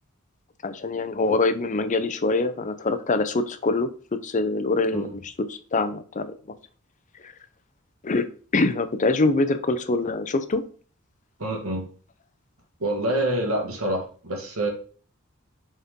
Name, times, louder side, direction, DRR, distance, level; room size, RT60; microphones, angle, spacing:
voice 1, 0.6-3.9 4.2-6.3 8.0-8.3 8.5-10.6, left 3 dB, 35° left, 11 dB, 0.5 m, -24 dB
voice 2, 11.4-11.9 12.8-14.7, right 1 dB, 90° right, 2 dB, 1.8 m, -26 dB
7.3 x 4.2 x 3.6 m, 0.41 s
head